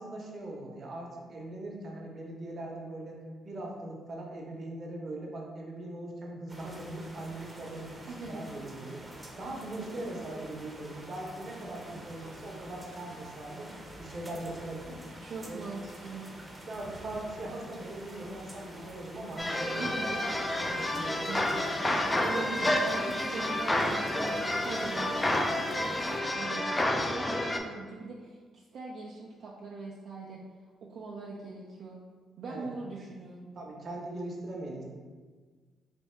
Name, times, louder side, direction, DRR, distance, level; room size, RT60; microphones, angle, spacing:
voice 1, 0.0-9.0 9.4-13.7 14.0-15.0 15.4-15.7 16.2-16.3 16.6-21.7 32.5-32.7 33.6-34.8, right 1 dB, 45° right, -1 dB, 0.9 m, -40 dB
sound 1, 6.5-26.2, right 1 dB, 15° right, 0.7 m, -47 dB
voice 2, 8.1-8.4 15.2-16.3 19.8-20.2 21.2-21.4 22.2-30.4 30.9-32.0 32.4-33.5, right 3 dB, 65° right, -4 dB, 0.5 m, -41 dB
sound 2, 19.4-27.6, left 1 dB, 20° left, 0.4 m, -30 dB
3.4 x 2.7 x 4.4 m, 1.5 s
cardioid pair, 90°, 0 cm